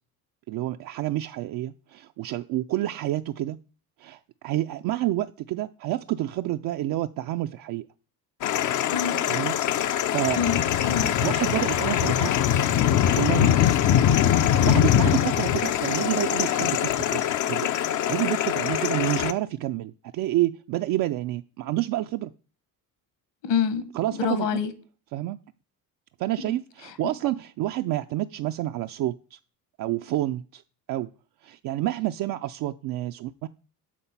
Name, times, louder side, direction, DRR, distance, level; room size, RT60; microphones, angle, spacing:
voice 1, 0.5-3.6 4.0-7.9 9.3-10.4 11.2-12.3 13.2-13.7 14.4-22.3 23.9-24.6 25.1-25.4 26.2-29.4 29.8-30.6 30.9-31.1 31.4-33.5, right 15 dB, 45° right, 0.4 m, -29 dB
sound 1, 8.4-19.3, left 10 dB, 40° left, 0.5 m, -23 dB
voice 2, 8.8-9.2 10.4-11.1 23.4-23.8 24.2-24.7 26.4-26.6, left 7 dB, 60° left, 1.3 m, -26 dB
7.5 x 3.8 x 5.4 m
hypercardioid pair, 60°, 49 cm